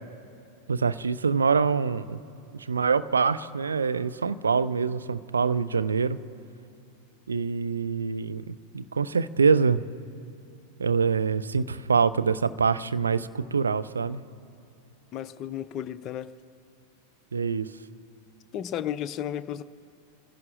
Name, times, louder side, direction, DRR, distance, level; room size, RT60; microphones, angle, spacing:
voice 1, 0.7-2.2 2.5-6.2 7.3-9.8 10.8-14.2 17.3-17.7, right 5 dB, 75° right, 0.5 m, -25 dB
voice 2, 15.1-16.3 18.5-19.6, left 10 dB, 35° left, 0.5 m, -33 dB
27.0 x 16.5 x 2.5 m
figure-of-eight pair, 90°, 0 cm